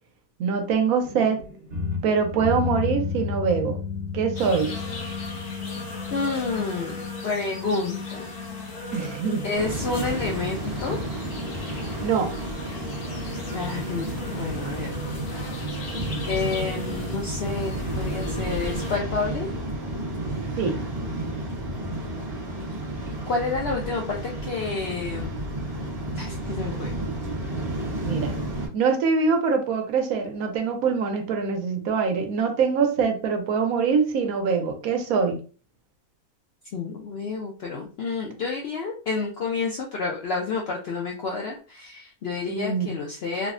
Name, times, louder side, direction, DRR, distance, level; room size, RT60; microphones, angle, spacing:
voice 1, 0.4-1.4 2.0-3.8 4.1-4.7 8.9-9.5 12.0-12.3 20.6-20.8 28.0-28.3 28.7-35.4 42.5-43.0, right 5 dB, 75° right, 5 dB, 1.0 m, -24 dB
sound 1, 1.0-17.2, left 5 dB, 55° right, 1.1 m, -35 dB
sound 2, 4.4-19.0, left 2 dB, 90° left, 1.5 m, -39 dB
voice 2, 6.1-7.0 7.2-8.3 9.4-11.0 13.5-14.9 16.3-19.5 23.3-25.3 26.2-26.9 36.7-43.5, left 4 dB, 75° left, 0 dB, 0.5 m, -29 dB
Waves surf, 9.5-28.7, right 1 dB, 30° right, 0.8 m, -31 dB
3.4 x 2.0 x 2.4 m, 0.37 s
omnidirectional pair, 1.6 m